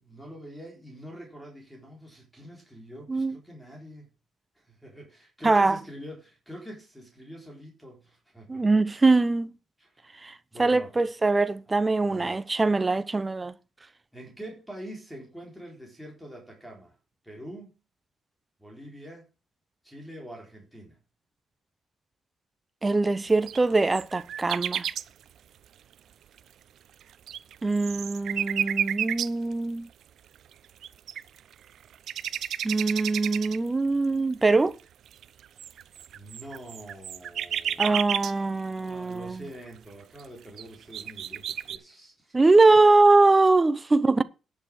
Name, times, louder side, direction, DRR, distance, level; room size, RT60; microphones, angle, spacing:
voice 1, 0.0-4.1 4.6-8.8 9.8-10.0 10.5-10.9 12.0-12.4 14.1-16.9 17.2-17.8 18.6-19.3 19.8-21.0 36.1-37.9 38.8-42.8, equal, ahead, 3.9 m, -45 dB
voice 2, 5.4-5.8 8.5-9.5 10.2-10.3 10.6-13.5 22.8-24.9 27.6-29.9 32.6-34.7 37.8-39.4 42.3-44.2, right 3 dB, 20° right, 0.8 m, -22 dB
sound 1, 23.5-25.0 26.4-26.5 27.0-29.5 30.5-30.6 30.8-31.5 31.9-33.7 34.3-34.4 35.1-38.3 39.5-39.6 40.2-40.3 40.6-41.8, right 10 dB, 65° right, 0.7 m, -31 dB
10.5 x 7.0 x 6.2 m
cardioid pair, 105°, 0 cm